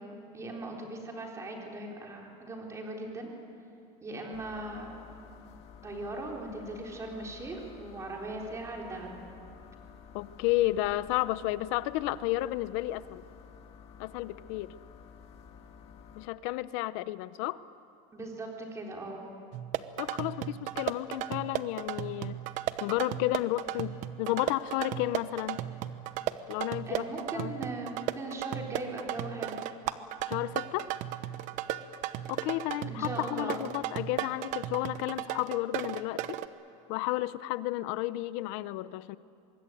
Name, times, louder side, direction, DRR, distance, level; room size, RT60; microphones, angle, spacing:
voice 1, 0.0-3.3 4.0-4.9 5.8-9.2 18.1-19.2 26.9-29.6 32.9-33.6, right 2 dB, 20° right, 0 dB, 4.0 m, -39 dB
sound 1, 4.3-16.3, left 6 dB, 40° left, 1.8 m, -52 dB
voice 2, 10.1-13.2 14.0-14.7 16.2-17.6 20.0-22.4 22.8-25.7 26.5-27.0 27.3-27.5 30.3-30.9 32.3-36.4 36.9-39.2, left 16 dB, 70° left, 16 dB, 0.8 m, -32 dB
sound 2, 19.5-36.5, right 13 dB, 50° right, 1.0 m, -35 dB
25.0 x 21.0 x 9.3 m, 2.6 s
cardioid pair, 155°, 16 cm